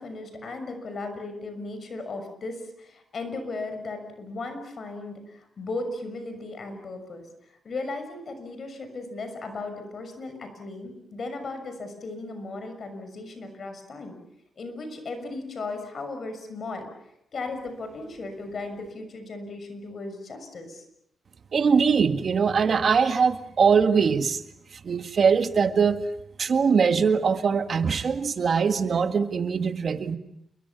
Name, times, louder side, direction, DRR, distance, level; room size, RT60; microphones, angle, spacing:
voice 1, 0.0-14.2 14.6-20.8, left 3 dB, 55° left, 7 dB, 6.4 m, -36 dB
voice 2, 21.5-24.4 24.8-26.0 26.4-30.2, right 6 dB, 55° right, 8 dB, 1.9 m, -22 dB
29.0 x 23.0 x 7.2 m, 0.79 s
cardioid pair, 95°, 0 cm